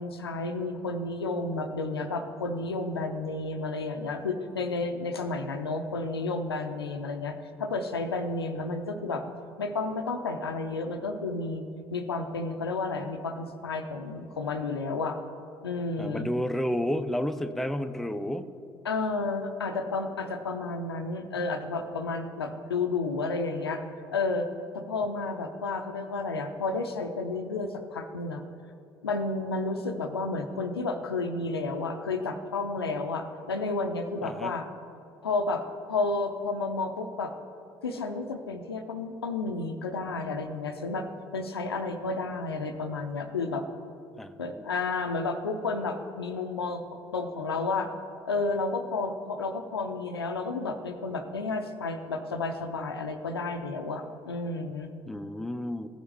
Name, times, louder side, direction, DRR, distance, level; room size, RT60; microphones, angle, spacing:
voice 1, 0.0-9.2 9.6-11.7 11.9-15.2 15.6-16.3 18.8-23.8 24.1-24.5 24.7-28.4 29.0-34.7 35.2-37.3 37.8-41.1 41.3-43.6 44.4-46.8 47.1-47.9 48.2-54.9, left 3 dB, 90° left, 7 dB, 0.5 m, -31 dB
voice 2, 16.0-18.5 34.2-34.5 44.1-44.6 55.1-55.9, left 1 dB, ahead, 9 dB, 0.4 m, -31 dB
14.5 x 6.2 x 3.4 m, 2.7 s
figure-of-eight pair, 55°, 13 cm